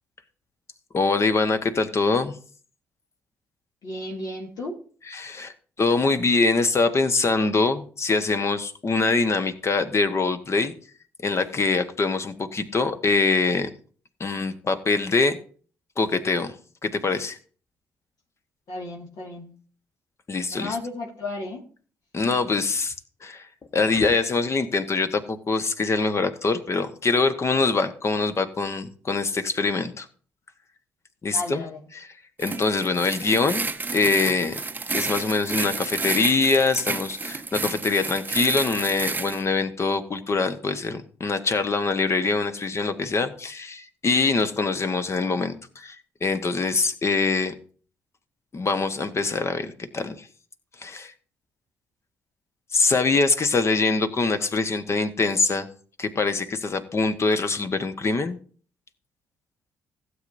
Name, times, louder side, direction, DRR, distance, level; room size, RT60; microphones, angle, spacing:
voice 1, 0.9-2.3 5.1-10.7 11.2-13.7 14.2-15.4 16.0-16.5 16.8-17.4 20.3-20.8 22.1-22.9 23.2-23.5 23.7-30.1 31.2-31.7 31.9-32.1 32.4-34.6 34.9-45.9 46.2-47.5 48.5-50.3 50.8-51.1 52.7-55.7 56.0-58.4, left 3 dB, 40° left, 9 dB, 1.3 m, -24 dB
voice 2, 3.8-4.7 18.7-19.5 20.5-21.7 22.2-22.4 31.3-31.8, left 2 dB, 60° left, -1 dB, 2.3 m, -34 dB
sound 1, 32.4-39.4, right 4 dB, 25° right, 0.7 m, -31 dB
16.0 x 8.0 x 2.7 m, 0.42 s
hypercardioid pair, 45°, 7 cm